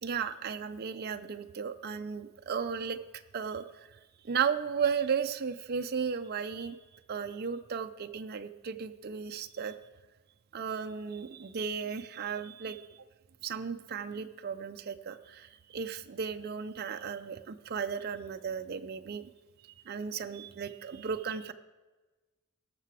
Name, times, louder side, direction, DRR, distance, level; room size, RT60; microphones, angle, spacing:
voice 1, 0.0-3.0 3.3-4.0 4.2-6.8 7.1-9.7 10.5-12.9 13.4-19.3 19.9-21.5, right 6 dB, 45° right, 8 dB, 0.4 m, -35 dB
17.5 x 6.7 x 4.8 m, 1.2 s
head